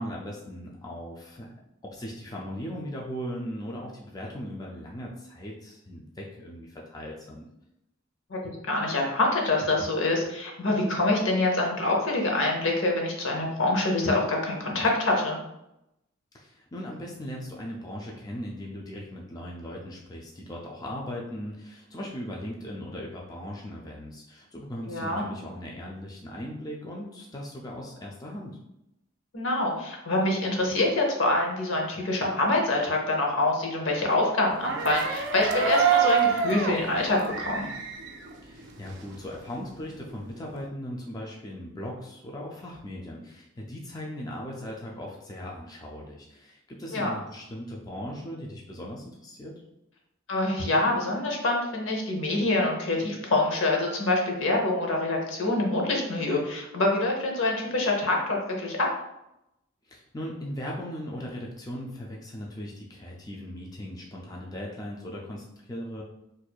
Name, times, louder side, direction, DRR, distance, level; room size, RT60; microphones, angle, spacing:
voice 1, 0.0-1.5 1.8-7.5 16.3-28.6 38.4-49.5 59.8-66.0, equal, 20° left, -2 dB, 0.4 m, -38 dB
voice 2, 8.3-15.4 24.9-25.2 29.3-37.7 46.9-47.1 50.3-58.9, left 2 dB, 70° left, 0 dB, 0.8 m, -25 dB
sound 1, 34.5-39.2 39.5-40.6, right 6 dB, 60° right, 0.5 m, -27 dB
4.3 x 2.6 x 2.3 m, 0.86 s
head